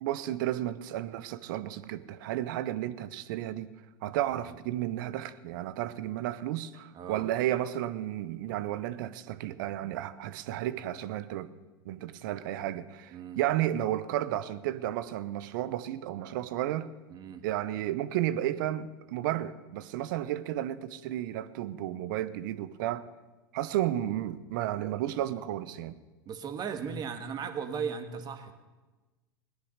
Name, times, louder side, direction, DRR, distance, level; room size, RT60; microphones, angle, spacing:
voice 1, 0.0-3.7 4.0-11.5 11.8-16.9 17.4-23.1 23.5-26.0, right 13 dB, 65° right, 15 dB, 0.8 m, -32 dB
voice 2, 6.9-7.3 13.1-13.4 17.1-17.4 26.3-28.5, right 6 dB, 35° right, 7 dB, 1.7 m, -37 dB
18.0 x 10.5 x 6.6 m, 1.2 s
hypercardioid pair, 95°, 12 cm